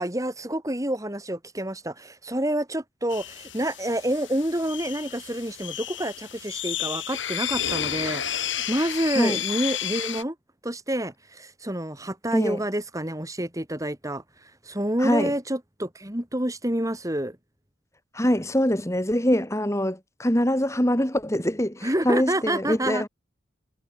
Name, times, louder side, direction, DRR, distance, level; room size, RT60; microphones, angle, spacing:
voice 1, 0.0-10.3 10.6-17.4 21.8-23.0, right 1 dB, 15° right, 3.1 m, -28 dB
sound 1, 3.1-10.2, left 10 dB, 70° left, 5.7 m, -32 dB
voice 2, 15.0-15.3 18.1-23.1, equal, 15° left, 2.7 m, -24 dB
head